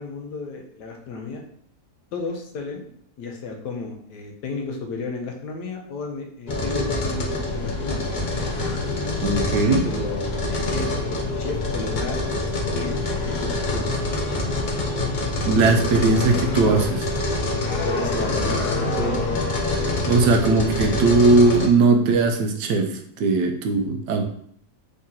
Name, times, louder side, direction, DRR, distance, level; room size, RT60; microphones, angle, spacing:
voice 1, 0.0-1.4 2.1-2.9 3.2-8.0 9.5-12.2 12.7-13.9 17.6-19.8, left 4 dB, 85° left, 2 dB, 1.4 m, -33 dB
sound 1, 6.5-21.7, left 2 dB, 65° left, 0.4 m, -25 dB
voice 2, 9.2-9.9 15.4-17.1 20.1-24.2, right 3 dB, 90° right, 4 dB, 1.3 m, -19 dB
4.1 x 3.7 x 2.8 m, 0.63 s
omnidirectional pair, 1.8 m